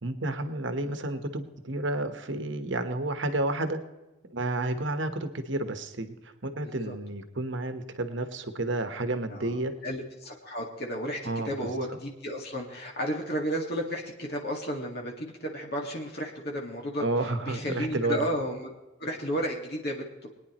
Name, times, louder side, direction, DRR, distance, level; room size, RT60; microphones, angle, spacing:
voice 1, 0.0-3.8 4.3-9.7 11.2-11.7 17.0-18.3, right 2 dB, 60° right, 8 dB, 1.2 m, -31 dB
voice 2, 6.6-6.9 9.3-11.2 11.4-18.7 19.0-20.0, equal, 50° left, 0 dB, 2.0 m, -33 dB
22.5 x 9.9 x 3.1 m, 1.1 s
head